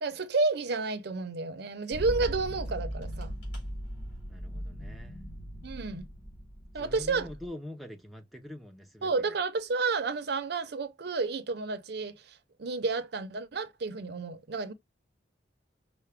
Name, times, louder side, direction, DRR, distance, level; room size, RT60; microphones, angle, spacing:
voice 1, 0.0-3.3 5.6-6.0 6.7-7.3 9.0-14.7, right 3 dB, 55° right, 0.5 m, -31 dB
sound 1, 1.9-7.5, equal, 55° left, 2.8 m, -39 dB
voice 2, 4.3-5.2 6.7-9.4, left 1 dB, ahead, 0.4 m, -45 dB
5.6 x 2.0 x 3.3 m
head